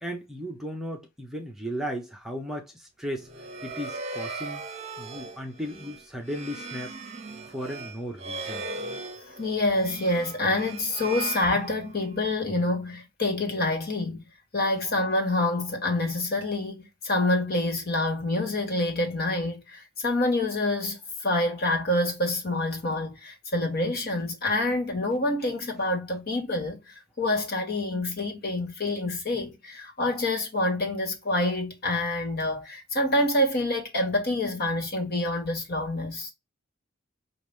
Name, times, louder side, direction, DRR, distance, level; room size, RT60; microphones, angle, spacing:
voice 1, 0.0-3.3 3.6-4.6 5.0-7.0 7.5-8.7, equal, ahead, 0.8 m, -35 dB
sound 1, 3.2-12.2, right 3 dB, 35° right, 0.9 m, -38 dB
voice 2, 9.3-14.2 14.5-36.3, left 2 dB, 50° left, 1.6 m, -27 dB
5.8 x 2.6 x 3.5 m
head